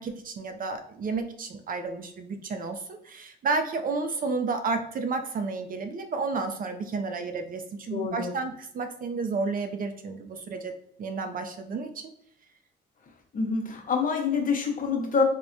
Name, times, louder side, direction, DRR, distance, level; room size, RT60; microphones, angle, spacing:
voice 1, 0.0-12.1, right 4 dB, 45° right, 7 dB, 0.4 m, -31 dB
voice 2, 7.9-8.3 13.3-15.2, left 5 dB, 45° left, 2 dB, 0.8 m, -26 dB
3.4 x 2.1 x 2.5 m, 0.66 s
cardioid pair, 90°, 20 cm